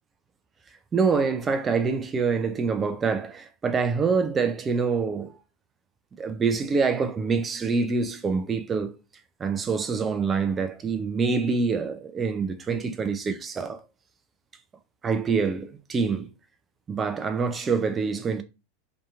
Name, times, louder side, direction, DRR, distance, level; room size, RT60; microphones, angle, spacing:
voice 1, 0.9-5.3 6.2-8.9 9.4-13.8 15.0-16.3 16.9-18.4, right 5 dB, 25° right, 0.5 m, -26 dB
2.8 x 2.5 x 2.4 m
hypercardioid pair, 90°, 0 cm